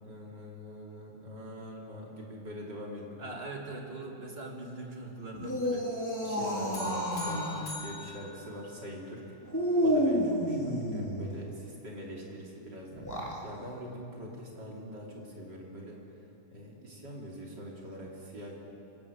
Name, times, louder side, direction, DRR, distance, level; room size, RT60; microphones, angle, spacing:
voice 1, 0.0-3.2 6.2-9.2 9.8-16.0 16.5-18.5, equal, 75° right, -2 dB, 3.9 m, -43 dB
voice 2, 3.2-5.9, right 2 dB, 35° right, 0 dB, 2.6 m, -41 dB
sound 1, 5.3-7.6 9.5-11.3 12.9-13.4, equal, 10° left, 2.9 m, -30 dB
sound 2, 6.7-9.2, left 2 dB, 40° left, 4.1 m, -44 dB
26.0 x 12.5 x 8.5 m, 2.9 s
omnidirectional pair, 1.9 m